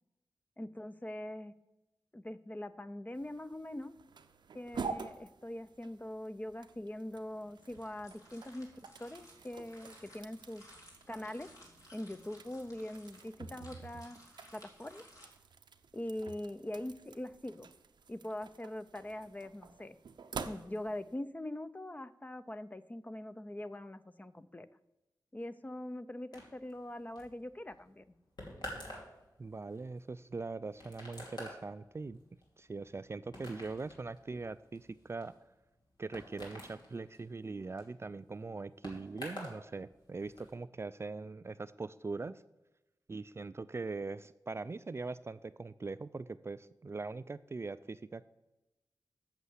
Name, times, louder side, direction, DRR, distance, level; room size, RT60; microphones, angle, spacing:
voice 1, 0.6-1.5 2.1-3.9 4.5-10.6 11.1-11.5 11.9-14.2 14.5-15.1 15.9-17.7 18.1-20.0 20.5-24.7 25.3-28.1, left 1 dB, 20° left, 12 dB, 0.6 m, -42 dB
sound 1, 3.1-21.2, right 5 dB, 90° right, 0.6 m, -49 dB
sound 2, 7.3-15.3, left 1 dB, 50° left, 3.1 m, -59 dB
sound 3, 26.3-39.6 39.9-40.5, left 1 dB, 70° left, 2.8 m, -49 dB
voice 2, 29.4-32.2 32.6-35.3 36.0-42.4 43.1-48.3, right 3 dB, 35° right, 14 dB, 0.3 m, -41 dB
8.1 x 6.7 x 8.1 m, 1.0 s
cardioid pair, 60°, 7 cm